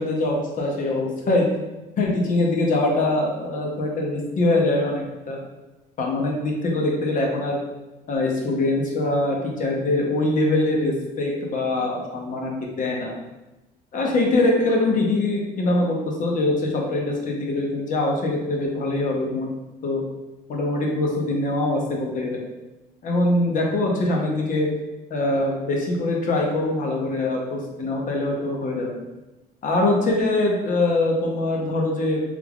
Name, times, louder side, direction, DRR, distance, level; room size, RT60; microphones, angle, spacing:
voice 1, 0.0-1.5 2.0-5.4 6.0-7.6 8.1-13.2 13.9-19.5 19.8-20.0 20.5-22.4 23.0-24.7 25.1-28.9 29.6-32.2, left 2 dB, 50° left, 0 dB, 0.8 m, -23 dB
3.4 x 3.3 x 2.3 m, 1.0 s
cardioid pair, 110°, 17 cm